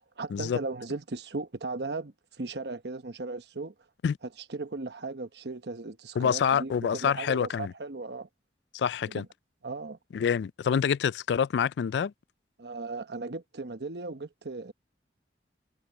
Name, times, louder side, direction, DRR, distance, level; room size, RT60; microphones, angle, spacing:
voice 1, 0.2-3.7 4.5-8.3 9.0-9.3 9.6-10.0 12.6-14.7, right 3 dB, 65° right, 1.1 m, -37 dB
voice 2, 6.2-7.7 8.7-9.2 10.1-12.1, left 7 dB, 70° left, 0.3 m, -27 dB
head